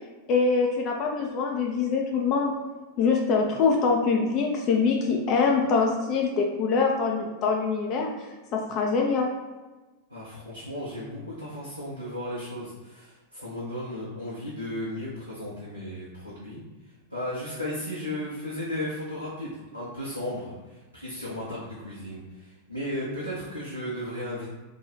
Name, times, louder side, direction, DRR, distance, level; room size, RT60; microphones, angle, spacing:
voice 1, 0.3-2.5 3.0-8.3 8.5-9.3, left 4 dB, 35° left, 0 dB, 0.4 m, -24 dB
voice 2, 10.1-16.6 17.1-24.5, left 1 dB, 90° left, -9 dB, 0.8 m, -35 dB
2.9 x 2.3 x 4.2 m, 1.2 s
figure-of-eight pair, 90°, 0 cm